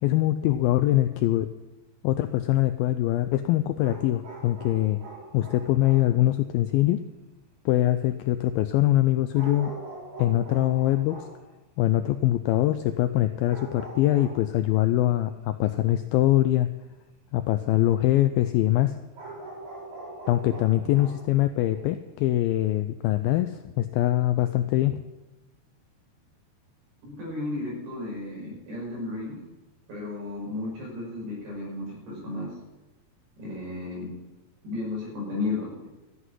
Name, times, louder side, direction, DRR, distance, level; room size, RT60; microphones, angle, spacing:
voice 1, 0.0-1.5 2.0-5.0 5.3-7.0 7.7-9.8 10.2-11.2 11.8-16.7 17.3-19.0 20.3-25.0, left 14 dB, 85° left, 9 dB, 2.1 m, -23 dB
sound 1, 3.8-6.2 9.3-11.5 13.4-14.5 19.1-21.9, right 2 dB, 45° right, 4.7 m, -42 dB
voice 2, 27.0-29.4 29.9-32.5 33.4-34.1 34.6-35.9, left 2 dB, 80° right, -4 dB, 8.2 m, -33 dB
13.5 x 7.9 x 9.8 m, 1.1 s
omnidirectional pair, 4.8 m